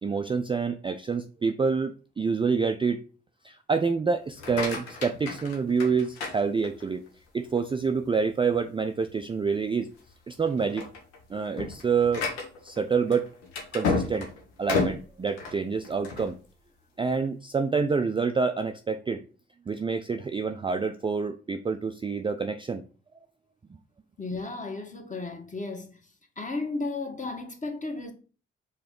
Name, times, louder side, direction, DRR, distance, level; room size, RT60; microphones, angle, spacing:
voice 1, 0.0-3.0 3.4-7.0 7.3-9.9 10.3-10.9 11.3-12.2 12.6-13.3 13.7-14.3 14.6-16.4 17.0-19.2 19.7-22.8, right 5 dB, 15° right, 0.4 m, -27 dB
sound 1, 4.2-7.1 7.6-8.0 8.5-8.6 9.0-9.2 9.8-10.1 10.4-16.3, left 4 dB, 85° left, 1.0 m, -32 dB
voice 2, 24.2-26.0 26.4-28.1, left 3 dB, 25° left, 1.3 m, -34 dB
4.7 x 2.9 x 3.7 m
hypercardioid pair, 40°, 31 cm